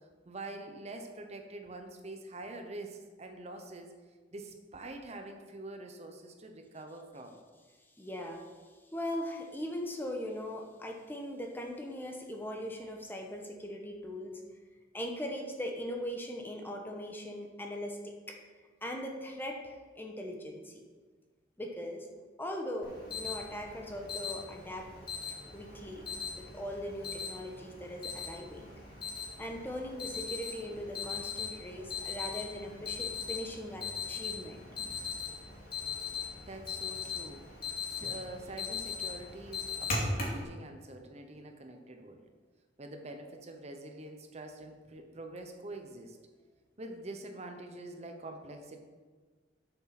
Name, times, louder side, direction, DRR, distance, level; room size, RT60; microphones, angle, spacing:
voice 1, 0.2-3.9 4.3-7.4 36.5-37.4 37.8-42.2 42.8-46.2 46.8-48.8, right 2 dB, 35° right, 4 dB, 0.9 m, -45 dB
voice 2, 8.0-8.5 8.9-14.4 14.9-18.4 18.8-20.8 21.6-22.1 22.4-24.9 25.3-26.0 26.3-28.7 29.4-34.7 38.0-38.1, equal, 10° left, 2 dB, 1.1 m, -40 dB
Alarm, 22.8-40.4, left 4 dB, 55° left, 2.4 m, -39 dB
7.9 x 6.9 x 5.8 m, 1.4 s
head